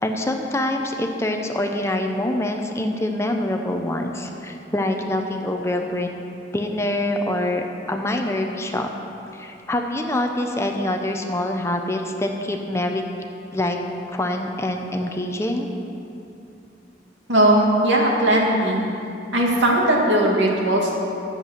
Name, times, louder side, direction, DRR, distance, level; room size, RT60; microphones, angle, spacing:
voice 1, 0.0-6.1 6.5-8.9 9.3-13.0 13.5-13.8 14.1-15.7, left 1 dB, 15° left, 3 dB, 0.7 m, -25 dB
voice 2, 17.3-18.8 19.3-21.0, right 1 dB, 80° right, -2 dB, 2.3 m, -18 dB
11.0 x 7.6 x 8.0 m, 2.7 s
head